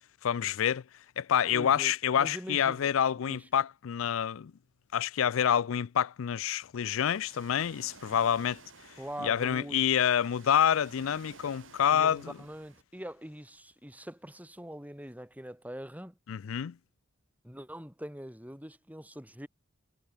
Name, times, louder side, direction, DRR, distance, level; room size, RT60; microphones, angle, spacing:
voice 1, 0.2-0.8 1.2-4.5 4.9-8.6 9.2-12.3 16.3-16.8, left 9 dB, 80° left, 0.4 m, -27 dB
voice 2, 1.5-2.9 3.2-3.5 9.0-9.8 11.9-16.2 17.4-19.5, equal, 10° right, 6.9 m, -43 dB
Ocean, 6.9-12.8, right 4 dB, 70° right, 5.1 m, -55 dB
head